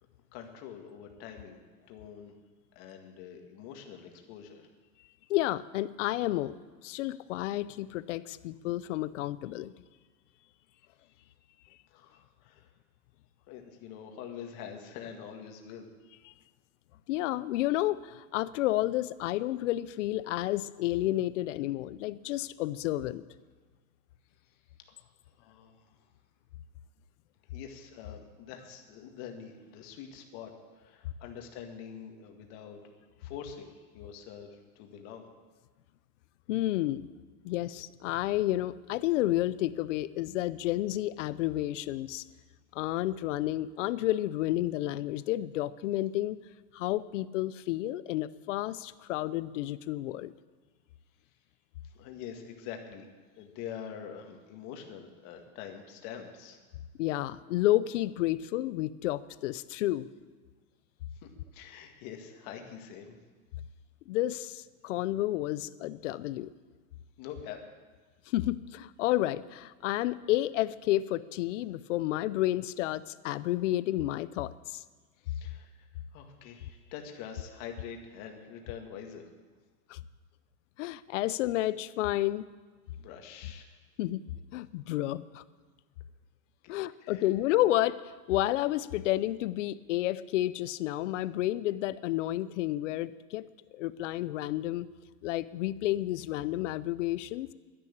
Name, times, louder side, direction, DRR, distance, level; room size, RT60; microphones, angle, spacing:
voice 1, 0.3-2.3 2.8-4.7 11.9-12.8 13.5-15.9 24.5-24.6 24.9-26.1 27.5-35.3 51.8-53.1 53.4-56.6 61.1-63.2 67.2-67.6 75.2-79.3 82.9-83.7 86.6-86.7 87.0-87.2, left 8 dB, 40° left, 4 dB, 1.9 m, -45 dB
voice 2, 5.3-6.6 6.8-9.7 17.1-23.2 36.5-37.1 37.4-42.2 42.7-46.4 46.7-50.3 57.0-60.1 64.1-66.5 68.3-74.8 79.9-80.0 80.8-82.5 84.0-84.2 84.5-85.4 86.7-93.5 93.7-94.9 95.2-97.5, left 15 dB, 55° left, 17 dB, 0.6 m, -31 dB
11.5 x 11.0 x 8.6 m, 1.4 s
supercardioid pair, 165°, 44 cm